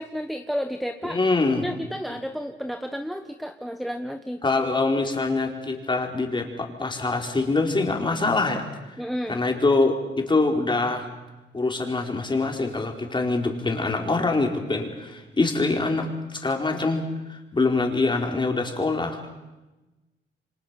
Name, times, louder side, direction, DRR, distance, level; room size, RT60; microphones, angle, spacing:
voice 1, 0.0-1.2 1.4-4.4 9.0-9.4, equal, ahead, 7 dB, 1.2 m, -31 dB
voice 2, 1.0-1.6 4.4-8.7 9.3-11.1 11.5-17.0 17.3-19.2, left 3 dB, 25° left, 2 dB, 4.2 m, -24 dB
28.5 x 25.0 x 5.9 m, 1.1 s
cardioid pair, 90°, 20 cm